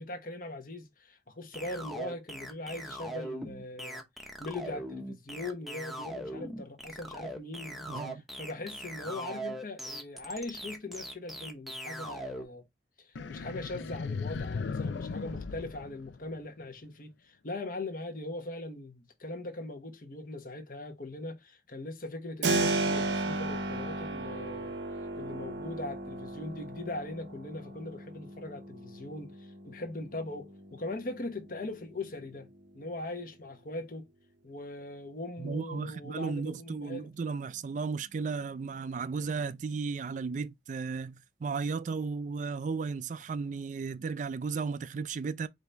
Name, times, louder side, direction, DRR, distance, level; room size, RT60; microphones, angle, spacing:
voice 1, 0.0-4.0 4.4-12.6 13.0-24.7 25.1-32.5 32.7-34.1 34.4-37.1, left 2 dB, 50° left, 1.1 m, -40 dB
sound 1, 1.5-12.5, right 1 dB, ahead, 0.7 m, -40 dB
voice 2, 7.9-8.2 35.4-45.5, right 5 dB, 45° right, 0.3 m, -35 dB
sound 2, 13.1-16.6, left 4 dB, 85° left, 0.5 m, -37 dB
Keyboard (musical), 22.4-33.1, right 2 dB, 85° right, 0.7 m, -35 dB
5.0 x 2.7 x 3.4 m
head